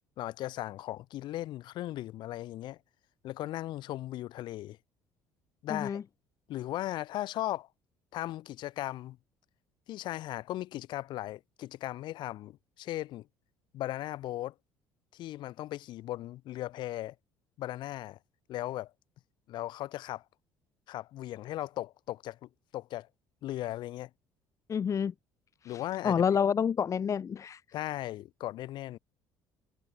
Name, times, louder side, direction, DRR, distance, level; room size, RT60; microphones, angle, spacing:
voice 1, 0.2-2.8 3.2-4.8 5.6-6.0 6.5-7.7 8.1-9.2 9.9-13.3 13.7-14.5 15.1-17.1 17.6-18.2 18.5-18.9 19.5-20.2 20.9-23.1 23.4-24.1 25.6-26.2 27.7-29.0, left 15 dB, 65° left, 5.0 m, -37 dB
voice 2, 5.7-6.0 24.7-25.1 25.6-27.6, left 7 dB, 40° left, 1.3 m, -29 dB
supercardioid pair, 85°, 8 cm